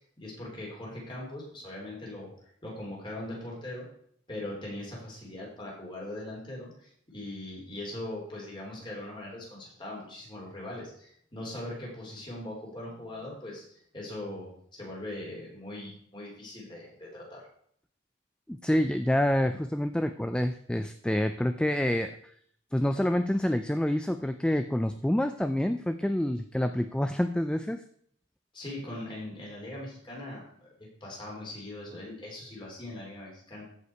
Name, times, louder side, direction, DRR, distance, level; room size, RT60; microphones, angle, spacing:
voice 1, 0.2-2.3 2.6-3.9 4.3-13.6 13.9-17.4 28.5-30.5 30.8-33.6, left 1 dB, 25° left, -3 dB, 3.6 m, -40 dB
voice 2, 18.5-22.2 22.7-27.8, left 1 dB, 5° left, 9 dB, 0.3 m, -27 dB
14.5 x 5.6 x 4.6 m, 0.66 s
head